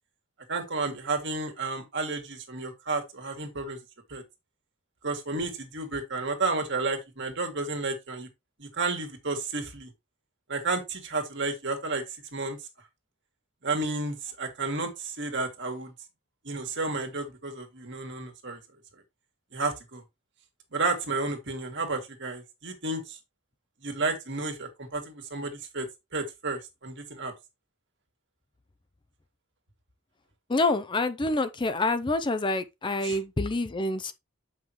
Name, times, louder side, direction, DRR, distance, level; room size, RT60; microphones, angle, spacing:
voice 1, 0.5-3.8 4.1-4.2 5.0-8.3 8.6-9.9 10.5-12.0 12.3-12.6 13.6-15.9 16.4-18.6 19.5-20.0 20.7-23.2 23.8-25.9 26.1-27.3 33.0-33.2, right 3 dB, 55° right, 1.9 m, -31 dB
voice 2, 30.5-34.1, left 2 dB, 20° left, 0.5 m, -27 dB
7.6 x 5.6 x 2.9 m
head